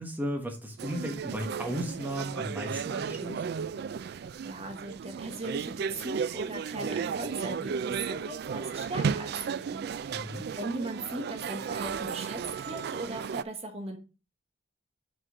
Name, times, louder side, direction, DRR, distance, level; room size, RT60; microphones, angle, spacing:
voice 1, 0.0-3.4 10.1-10.5, equal, 10° right, 1.2 m, -35 dB
sound 1, 0.8-13.4, right 6 dB, 60° right, 0.3 m, -34 dB
voice 2, 4.0-12.4 12.6-14.0, right 1 dB, 35° right, 1.2 m, -39 dB
6.1 x 5.0 x 4.8 m
head